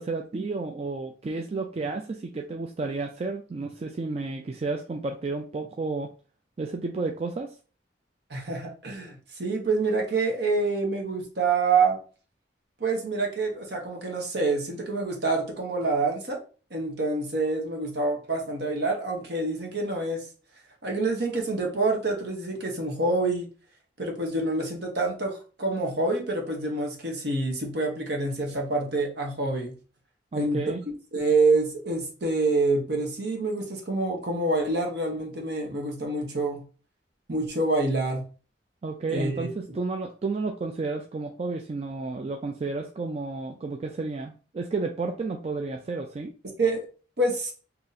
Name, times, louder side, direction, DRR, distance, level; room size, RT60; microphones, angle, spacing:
voice 1, 0.0-6.1 6.6-7.5 30.3-30.8 38.8-46.3, right 3 dB, 35° right, 3 dB, 0.3 m, -32 dB
voice 2, 8.3-12.0 12.8-16.4 16.7-20.3 20.8-23.5 24.0-29.8 30.3-30.6 31.1-36.7 37.3-38.2 39.1-39.5 46.6-46.9 47.2-47.5, right 3 dB, 60° right, 1 dB, 1.0 m, -27 dB
2.8 x 2.6 x 4.0 m, 0.38 s
head